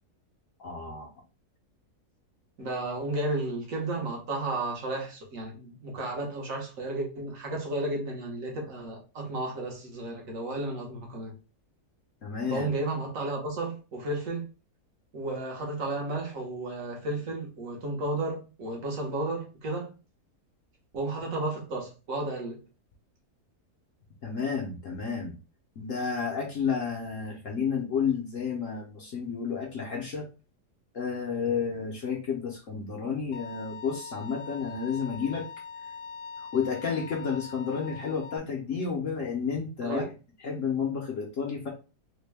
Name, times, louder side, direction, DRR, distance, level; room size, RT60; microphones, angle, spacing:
voice 1, 0.6-1.1 12.2-12.7 24.2-25.3 25.8-30.3 30.9-35.5 36.4-40.0 40.4-41.7, left 6 dB, 60° left, 1.0 m, -31 dB
voice 2, 2.6-11.3 12.5-14.5 15.1-19.9 20.9-22.6 39.8-40.1, right 2 dB, 60° right, 1.4 m, -33 dB
Bowed string instrument, 33.3-38.4, left 5 dB, 90° left, 1.2 m, -42 dB
3.6 x 2.2 x 3.3 m
omnidirectional pair, 1.7 m